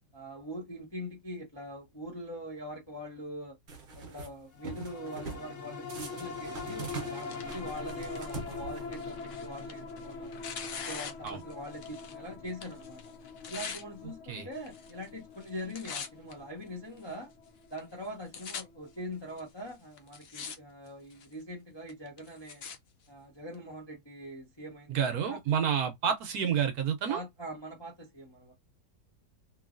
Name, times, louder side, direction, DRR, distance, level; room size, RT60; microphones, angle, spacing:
voice 1, 0.1-3.6 3.9-10.3 10.7-13.0 13.5-17.3 17.7-22.6 23.1-25.4 27.1-28.5, equal, 25° left, 0.6 m, -43 dB
sound 1, 3.7-4.3 4.6-5.5 5.9-9.1, right 3 dB, 45° right, 0.7 m, -43 dB
sound 2, 4.6-19.3 19.7-19.8, left 4 dB, 55° left, 1.0 m, -43 dB
Tearing, 6.8-12.2 12.5-13.8 14.6-15.1 15.4-16.3 17.0-17.1 17.8-17.9 18.1-18.6 19.4-19.5 20.0-20.6 20.9-21.3 21.9-22.8 23.5-23.6, left 6 dB, 75° left, 0.5 m, -43 dB
voice 2, 24.9-27.2, right 8 dB, 70° right, 1.0 m, -29 dB
3.0 x 2.6 x 2.4 m
omnidirectional pair, 1.8 m